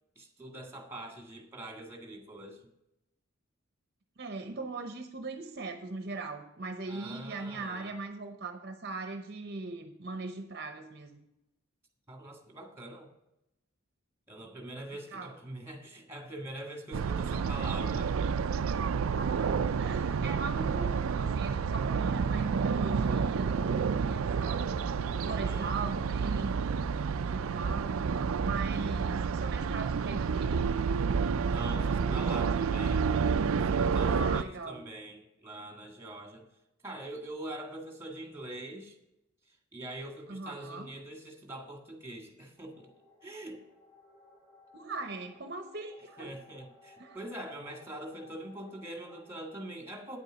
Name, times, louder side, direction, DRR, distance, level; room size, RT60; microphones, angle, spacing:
voice 1, 0.1-2.6 6.9-8.0 12.1-13.1 14.3-18.2 25.2-25.8 31.4-33.1 33.5-36.5 36.8-39.0 39.5-42.9 43.2-43.6 46.2-50.2, right 1 dB, 10° right, 3 dB, 1.7 m, -43 dB
voice 2, 4.2-11.2 15.1-15.3 19.1-24.7 25.2-26.6 27.2-28.0 28.4-30.7 31.8-32.7 34.0-34.8 40.3-40.9 44.7-46.3 47.0-47.2, right 3 dB, 50° right, 6 dB, 0.8 m, -40 dB
sound 1, 16.9-34.4, right 5 dB, 80° right, 0.4 m, -29 dB
sound 2, 42.6-49.6, left 2 dB, 20° left, 3.7 m, -59 dB
9.3 x 8.1 x 5.0 m, 0.88 s
head